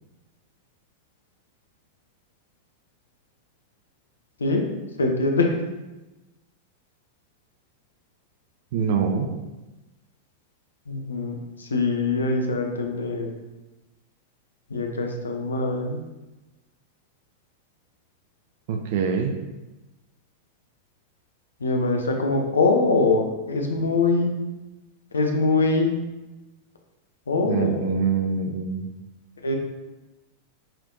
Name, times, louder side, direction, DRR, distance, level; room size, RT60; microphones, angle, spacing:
voice 1, 5.0-5.6 10.9-13.3 14.7-16.0 21.6-24.3 25.1-26.0 27.3-28.0 29.4-29.6, left 3 dB, 70° left, 3 dB, 0.6 m, -23 dB
voice 2, 8.7-9.3 18.7-19.4 27.5-28.9, right 6 dB, 50° right, 4 dB, 0.4 m, -24 dB
5.7 x 3.3 x 2.7 m, 1.1 s
figure-of-eight pair, 90°, 0 cm